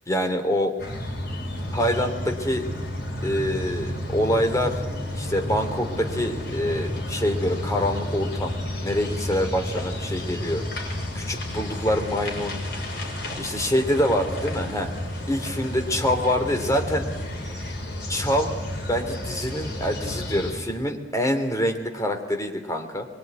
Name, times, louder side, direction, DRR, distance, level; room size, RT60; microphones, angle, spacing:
voice 1, 0.1-0.7 1.7-2.6 3.2-4.8 5.1-8.5 8.8-10.6 11.1-12.6 13.4-14.9 15.3-17.1 18.1-18.5 18.9-23.1, equal, 15° left, 4 dB, 2.9 m, -25 dB
sound 1, 0.8-20.5, left 1 dB, 55° left, 6.2 m, -31 dB
23.5 x 23.0 x 9.6 m, 1.2 s
head